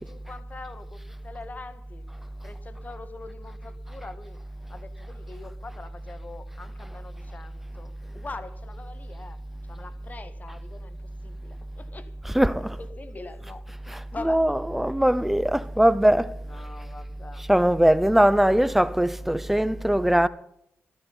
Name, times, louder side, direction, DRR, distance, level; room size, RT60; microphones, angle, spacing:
voice 1, 0.0-2.0 2.4-4.4 4.7-9.4 9.7-12.2 12.8-14.4 16.4-17.5, left 3 dB, 35° left, 1.6 m, -43 dB
voice 2, 12.2-12.8 13.9-16.3 17.5-20.3, right 1 dB, 5° right, 0.7 m, -21 dB
14.0 x 13.5 x 5.5 m
cardioid pair, 95°, 5 cm